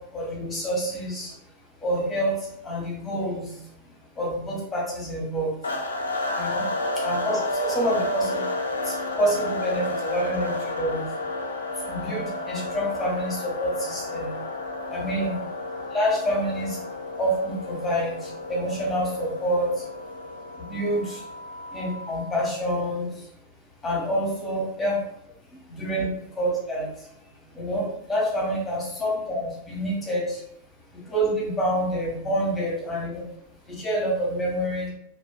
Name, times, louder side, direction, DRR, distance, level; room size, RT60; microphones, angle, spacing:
voice 1, 0.1-1.3 1.8-5.5 6.3-6.7 7.0-8.4 8.8-11.0 11.9-14.3 14.9-15.4 15.9-16.8 17.2-18.1 18.5-19.7 20.6-21.2 21.7-23.3 23.8-25.0 25.7-26.1 26.4-27.1 27.5-30.4 31.1-33.2 33.7-34.9, equal, 15° left, -4 dB, 1.0 m, -27 dB
sound 1, 5.6-22.3, left 2 dB, 75° left, 0.3 m, -31 dB
2.5 x 2.3 x 2.3 m, 0.74 s
figure-of-eight pair, 90°, 0 cm